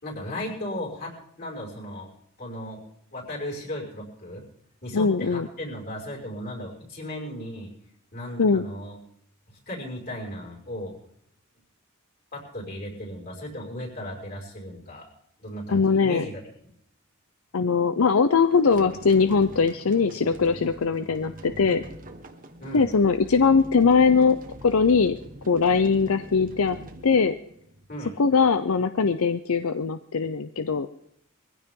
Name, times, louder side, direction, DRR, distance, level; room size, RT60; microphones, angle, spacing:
voice 1, 0.0-2.1 2.4-2.8 3.1-4.4 4.8-7.7 8.1-9.0 9.5-11.0 12.3-15.1 15.4-16.7 22.6-22.9 27.9-28.2, left 1 dB, 45° left, -1 dB, 5.5 m, -36 dB
voice 2, 4.9-5.5 8.4-8.7 15.7-16.2 17.5-21.8 22.7-24.4 24.6-25.2 25.5-26.8 27.0-27.4 28.2-30.9, left 5 dB, 80° left, 11 dB, 0.6 m, -21 dB
sound 1, 18.5-27.9, right 1 dB, 40° right, 1.4 m, -43 dB
21.0 x 15.5 x 3.8 m, 0.72 s
head